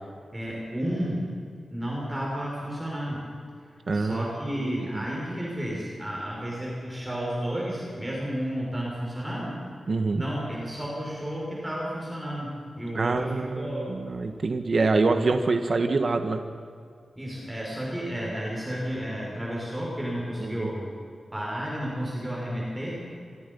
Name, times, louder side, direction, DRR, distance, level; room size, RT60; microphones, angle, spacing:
voice 1, 0.3-1.2 1.7-3.2 3.9-9.6 10.2-14.0 17.2-20.9 21.3-23.0, equal, 10° right, -4 dB, 6.0 m, -32 dB
voice 2, 3.9-4.3 4.6-5.0 9.9-10.2 12.9-16.4 20.4-20.7, right 3 dB, 45° right, 6 dB, 1.6 m, -26 dB
27.5 x 24.0 x 5.6 m, 2.3 s
wide cardioid pair, 155°, 0 cm